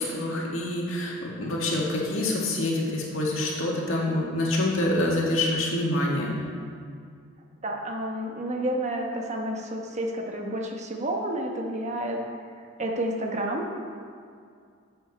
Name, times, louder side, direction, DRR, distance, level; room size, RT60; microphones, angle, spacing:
voice 1, 0.0-6.3, left 1 dB, 65° left, -2 dB, 2.0 m, -26 dB
voice 2, 7.6-12.2 12.8-13.7, right 1 dB, 35° right, 1 dB, 1.1 m, -30 dB
12.0 x 7.9 x 4.2 m, 2.2 s
head